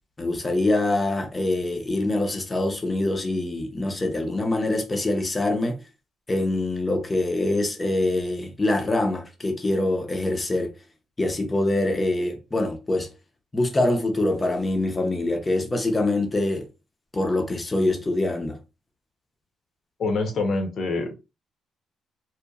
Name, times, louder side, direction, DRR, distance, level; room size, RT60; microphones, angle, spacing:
voice 1, 0.2-5.8 6.3-10.7 11.2-13.1 13.5-16.7 17.1-18.6, left 2 dB, 20° left, 0.6 m, -24 dB
voice 2, 20.0-21.1, left 3 dB, 60° left, 0.8 m, -25 dB
2.8 x 2.1 x 2.3 m
cardioid pair, 90°, 0 cm